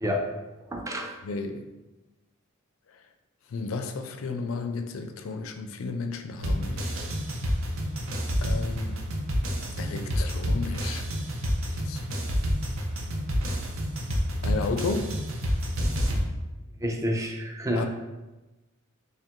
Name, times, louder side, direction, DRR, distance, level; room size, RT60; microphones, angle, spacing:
voice 1, 0.7-1.1 16.8-17.9, equal, 15° right, 2 dB, 0.4 m, -28 dB
voice 2, 1.2-1.6 2.9-3.0 3.5-7.0 7.7-8.0 8.4-9.0 9.8-11.1 11.6-12.0 14.4-15.2 17.7-17.9, left 3 dB, 70° left, 6 dB, 0.4 m, -33 dB
sound 1, 6.4-16.3, equal, 70° right, 0.6 m, -29 dB
3.3 x 2.5 x 4.4 m, 1.1 s
head